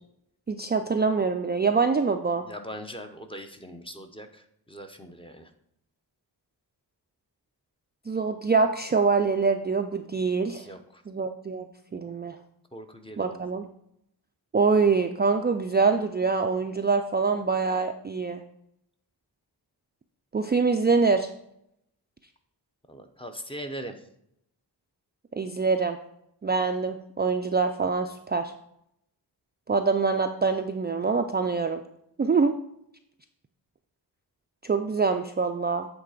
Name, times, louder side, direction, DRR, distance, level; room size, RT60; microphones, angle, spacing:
voice 1, 0.5-2.5 8.1-10.7 11.1-11.7 11.9-12.4 13.2-13.7 14.5-18.4 20.3-21.3 25.3-26.0 26.4-28.5 29.7-31.8 32.2-32.6 34.6-35.9, right 4 dB, 25° right, 5 dB, 0.3 m, -24 dB
voice 2, 2.4-5.5 10.5-11.0 12.7-13.4 22.9-24.0, equal, 15° left, 6 dB, 0.6 m, -41 dB
8.1 x 3.9 x 4.9 m, 0.77 s
wide cardioid pair, 125°, 41 cm